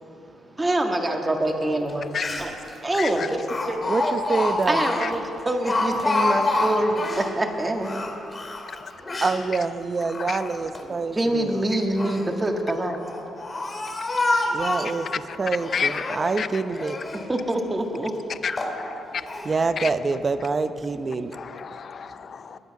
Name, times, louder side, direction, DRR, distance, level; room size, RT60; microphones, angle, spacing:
voice 1, 0.5-3.8 4.7-8.2 10.8-13.0 17.3-18.1, right 1 dB, 20° right, 1.7 m, -26 dB
Speech, 1.9-2.0 2.2-2.7 3.5-7.3 7.8-9.4 10.0-10.8 11.7-12.3 13.0-15.0 15.6-16.4 16.8-17.3 17.8-17.9 18.5-18.8 19.3-19.5, left 2 dB, 30° left, 2.5 m, -27 dB
voice 2, 3.9-4.8 9.2-11.7 14.5-15.1 15.4-17.0 19.4-21.3, right 4 dB, 35° right, 0.7 m, -26 dB
voice 3, 15.7-16.5 18.4-19.0 19.8-19.9 21.3-22.6, left 6 dB, 50° left, 0.5 m, -30 dB
21.0 x 8.2 x 5.9 m
cardioid pair, 90°, 0 cm